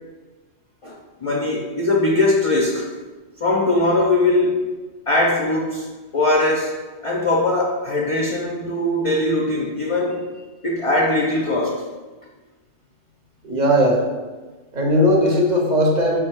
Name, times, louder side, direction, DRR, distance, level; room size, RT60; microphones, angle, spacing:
voice 1, 0.8-2.9 3.4-4.8 5.1-5.9 6.1-6.7 7.0-10.3 10.6-11.8, left 2 dB, 55° left, -1 dB, 0.3 m, -20 dB
voice 2, 13.4-14.1 14.7-16.2, equal, 45° right, -1 dB, 0.7 m, -17 dB
5.3 x 2.2 x 4.4 m, 1.3 s
omnidirectional pair, 1.2 m